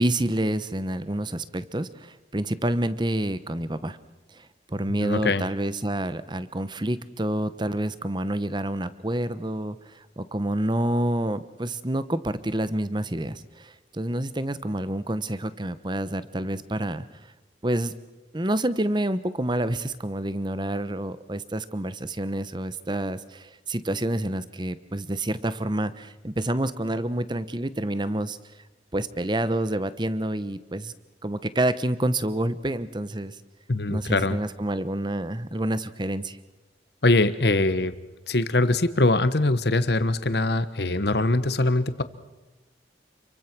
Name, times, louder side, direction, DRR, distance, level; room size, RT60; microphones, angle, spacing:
voice 1, 0.0-4.0 4.7-17.1 17.6-17.9 18.3-28.4 28.9-30.9 31.2-33.3 33.9-36.4, right 1 dB, 25° right, 14 dB, 1.0 m, -28 dB
voice 2, 4.9-5.5 33.7-34.4 37.0-37.9 38.3-42.0, left 2 dB, 60° left, 13 dB, 1.2 m, -22 dB
28.5 x 23.5 x 6.1 m, 1.1 s
head